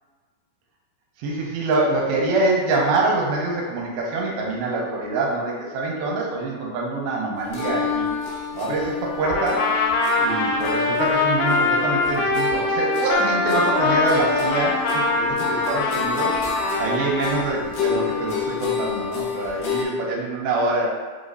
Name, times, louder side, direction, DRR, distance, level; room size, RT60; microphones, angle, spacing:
voice 1, 1.2-8.1 8.5-9.7 10.2-16.4 16.8-20.9, right 2 dB, 85° right, -2 dB, 2.5 m, -25 dB
sound 1, 7.5-19.9, left 6 dB, 75° left, 2.5 m, -29 dB
Trumpet, 9.2-17.4, left 3 dB, 90° left, 1.9 m, -23 dB
5.6 x 3.1 x 2.6 m, 1.5 s
omnidirectional pair, 4.4 m